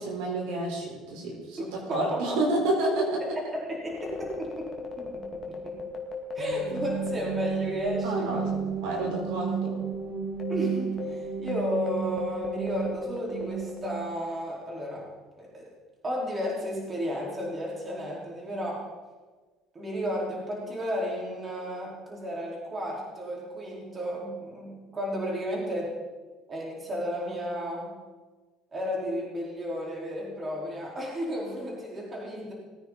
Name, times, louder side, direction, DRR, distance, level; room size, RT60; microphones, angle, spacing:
voice 1, 0.0-3.2 8.0-9.8, right 2 dB, 85° right, -1 dB, 4.4 m, -29 dB
voice 2, 1.9-2.6 3.2-3.3 3.7-4.7 5.0-5.8 6.3-8.5 10.5-15.1 15.3-15.7 16.0-18.8 19.7-26.0 26.5-27.9 28.7-32.5, equal, 25° right, -4 dB, 4.3 m, -33 dB
sound 1, 3.8-8.6 8.9-9.0 9.6-14.4, left 4 dB, 35° left, 2.1 m, -38 dB
sound 2, 6.4-14.2, right 7 dB, 45° right, 2.3 m, -33 dB
20.0 x 9.5 x 4.1 m, 1.3 s
cardioid pair, 130°, 0 cm